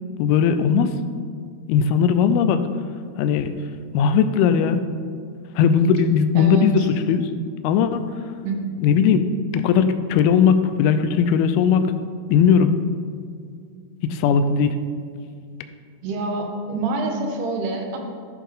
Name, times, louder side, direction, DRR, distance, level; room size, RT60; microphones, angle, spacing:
voice 1, 0.2-1.0 1.7-2.7 3.2-3.5 3.9-4.8 5.6-7.3 7.6-8.1 8.8-9.2 9.5-11.9 12.3-12.7 14.0-14.8, left 7 dB, 80° left, 9 dB, 2.3 m, -18 dB
voice 2, 6.4-6.9 8.4-8.6 16.0-18.0, right 3 dB, 80° right, 2 dB, 3.1 m, -27 dB
12.0 x 8.3 x 3.7 m, 2.1 s
omnidirectional pair, 4.7 m